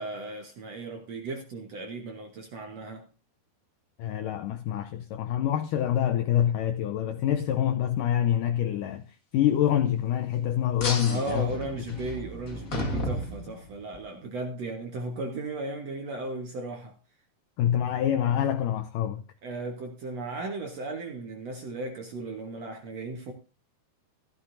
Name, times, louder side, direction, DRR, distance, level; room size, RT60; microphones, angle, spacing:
voice 1, 0.0-3.1 11.1-16.9 19.4-23.3, right 2 dB, 60° right, 1.8 m, -36 dB
voice 2, 4.0-9.0 9.3-11.5 17.6-19.2, left 10 dB, 85° left, 1.9 m, -26 dB
sound 1, 10.8-14.0, left 1 dB, 45° left, 1.1 m, -33 dB
14.5 x 14.0 x 2.7 m
omnidirectional pair, 4.6 m